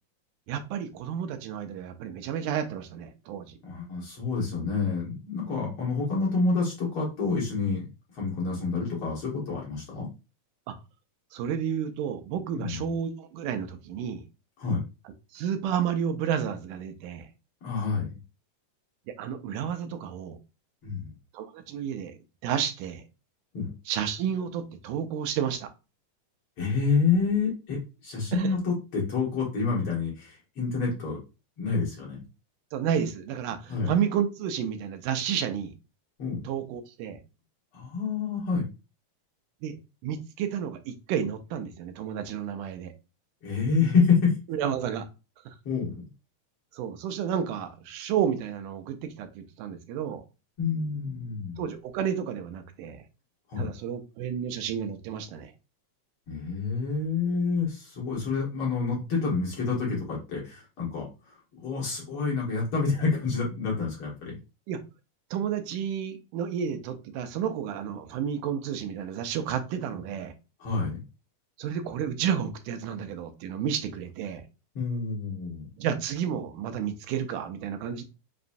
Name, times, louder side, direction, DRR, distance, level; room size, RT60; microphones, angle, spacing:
voice 1, 0.5-3.6 10.7-10.8 11.3-14.2 15.3-17.3 19.2-20.4 21.3-22.2 22.4-23.0 23.9-25.7 28.3-28.6 32.7-35.7 36.4-37.2 39.6-39.8 40.0-42.9 44.5-45.1 46.7-50.2 51.6-53.0 53.6-55.5 64.7-64.8 65.3-70.3 71.6-74.4 75.8-78.0, right 8 dB, 85° right, 2.2 m, -31 dB
voice 2, 3.6-7.9 8.1-10.1 12.5-12.9 14.6-14.8 17.6-18.1 20.8-21.1 23.5-23.7 26.6-31.2 31.6-32.2 33.7-33.9 36.2-36.4 37.7-38.6 43.4-44.3 45.7-46.0 50.6-51.6 53.5-53.7 56.3-64.4 70.6-71.0 74.8-75.7, left 4 dB, 50° left, 2.0 m, -28 dB
5.5 x 3.0 x 2.6 m
omnidirectional pair, 3.6 m